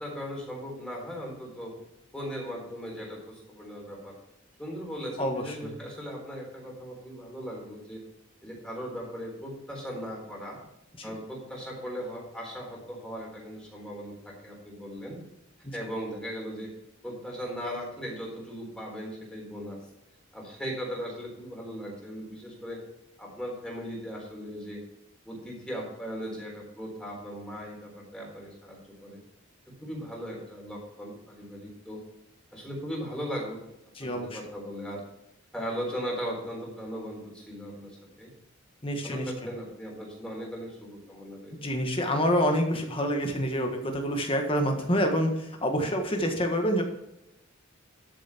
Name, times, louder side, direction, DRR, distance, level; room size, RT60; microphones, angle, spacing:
voice 1, 0.0-1.7 2.1-4.2 4.6-8.0 8.4-10.6 11.0-15.2 15.7-16.7 17.0-19.8 20.3-22.8 23.2-24.8 25.2-29.2 29.7-32.0 32.5-33.6 34.0-35.0 35.5-38.3 38.9-41.6, equal, 5° left, -2 dB, 3.9 m, -38 dB
voice 2, 5.2-5.7 11.0-11.1 34.0-34.4 38.8-39.2 41.5-46.8, equal, 25° left, 3 dB, 1.5 m, -27 dB
12.5 x 7.1 x 4.5 m, 0.87 s
head